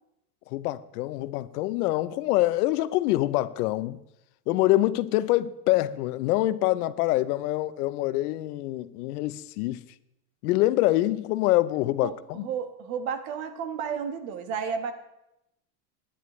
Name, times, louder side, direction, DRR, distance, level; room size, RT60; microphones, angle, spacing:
voice 1, 0.5-4.0 4.5-9.8 10.4-12.5, left 16 dB, 80° left, 0.8 m, -25 dB
voice 2, 12.0-14.9, right 7 dB, 60° right, 1.5 m, -32 dB
21.5 x 10.0 x 3.2 m
supercardioid pair, 165°, 45 cm